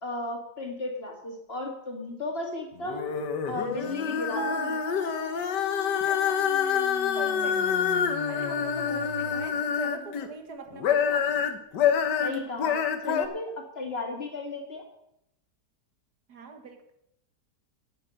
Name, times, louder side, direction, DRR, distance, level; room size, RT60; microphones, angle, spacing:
voice 1, 0.0-3.1 3.5-4.8 12.2-14.8, left 2 dB, 35° left, 2 dB, 2.2 m, -34 dB
sound 1, 2.8-10.3 10.7-13.3, left 7 dB, 85° left, 1.7 m, -27 dB
sound 2, 3.5-9.5, left 9 dB, 70° left, 1.2 m, -43 dB
Mallet percussion, 4.4-6.3, right 6 dB, 40° right, 1.0 m, -38 dB
voice 2, 6.0-7.7 8.0-11.3 16.3-16.9, right 4 dB, 70° right, 6 dB, 1.9 m, -43 dB
9.8 x 7.1 x 8.9 m, 0.79 s
omnidirectional pair, 1.8 m